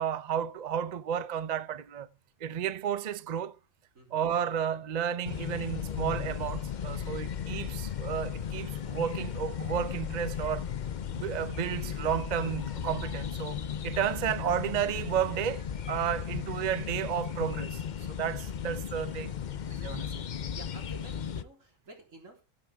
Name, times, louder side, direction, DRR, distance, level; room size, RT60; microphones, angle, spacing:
voice 1, 0.0-2.1 2.4-3.6 4.1-10.7 11.1-19.3 19.7-20.2, right 9 dB, 45° right, 0.5 m, -32 dB
voice 2, 3.9-4.4 7.0-7.5 20.5-22.4, right 2 dB, 80° right, 4.0 m, -51 dB
sound 1, 5.2-21.4, left 8 dB, 50° left, 0.6 m, -36 dB
15.5 x 8.3 x 3.5 m
omnidirectional pair, 1.4 m